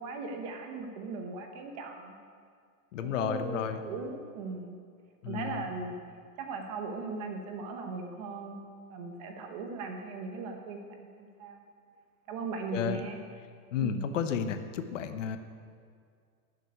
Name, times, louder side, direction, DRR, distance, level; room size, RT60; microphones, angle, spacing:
voice 1, 0.0-2.2 3.0-4.8 5.3-6.0 6.4-8.6 8.9-11.6 12.3-13.2 13.8-14.0, right 4 dB, 25° right, 4 dB, 0.9 m, -38 dB
voice 2, 2.9-3.8 5.2-5.6 12.7-13.0 13.7-15.4, left 7 dB, 55° left, 9 dB, 1.0 m, -32 dB
11.0 x 7.8 x 9.7 m, 2.2 s
supercardioid pair, 180°, 45 cm